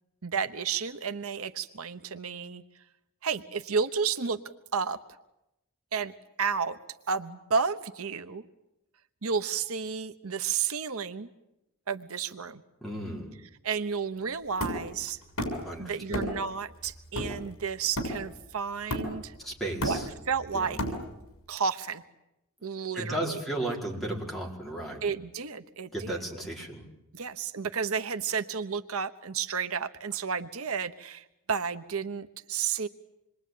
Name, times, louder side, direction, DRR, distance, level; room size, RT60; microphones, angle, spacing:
voice 1, 0.2-2.6 3.2-4.4 4.7-5.0 5.9-6.1 6.4-6.8 7.1-8.4 9.2-11.3 11.9-12.6 13.6-15.2 15.8-19.3 19.8-20.0 20.3-20.8 21.5-22.0 22.6-23.4 25.0-26.1 27.1-32.9, right 6 dB, 70° right, 10 dB, 1.0 m, -31 dB
voice 2, 12.8-13.3 15.6-16.3 19.4-20.1 20.5-20.8 22.9-25.0 25.9-26.9, right 1 dB, ahead, -2 dB, 4.7 m, -34 dB
Hammer, 14.6-15.7 16.1-16.5 16.8-18.4 18.9-19.4 19.6-21.3, equal, 70° left, 6.5 m, -33 dB
27.0 x 22.5 x 9.4 m, 0.90 s
head